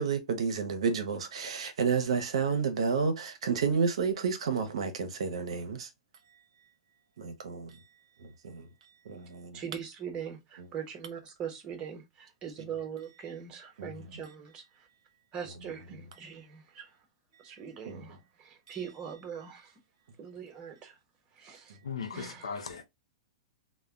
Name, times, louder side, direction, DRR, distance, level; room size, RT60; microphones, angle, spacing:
voice 1, 0.0-5.9 7.2-7.8 8.2-8.7 9.1-9.6 13.8-13.9 17.9-18.0 18.7-18.8, right 5 dB, 75° right, 0.6 m, -30 dB
voice 2, 9.5-14.7 15.3-17.0 17.4-19.8 20.2-21.0 21.3-21.8 22.1-22.8, right 7 dB, 30° right, 1.0 m, -42 dB
voice 3, 21.8-22.9, left 6 dB, 90° left, 0.5 m, -37 dB
2.1 x 2.1 x 3.6 m
hypercardioid pair, 120°, 3 cm